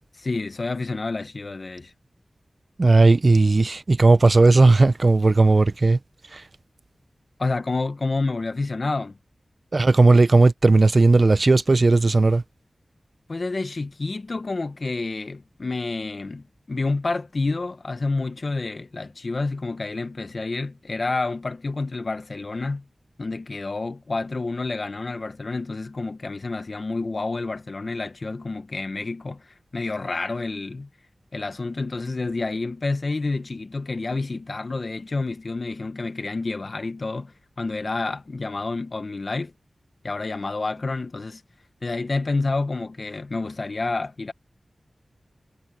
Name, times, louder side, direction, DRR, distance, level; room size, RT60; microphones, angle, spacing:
voice 1, 0.2-1.9 7.4-9.2 13.3-22.9 23.2-30.9 31.3-39.5 40.0-41.4 41.8-44.3, left 3 dB, 60° left, 1.5 m, -29 dB
voice 2, 2.8-6.0 6.3-6.4 9.7-12.4, right 3 dB, 55° right, 0.9 m, -16 dB
cardioid pair, 45°, 0 cm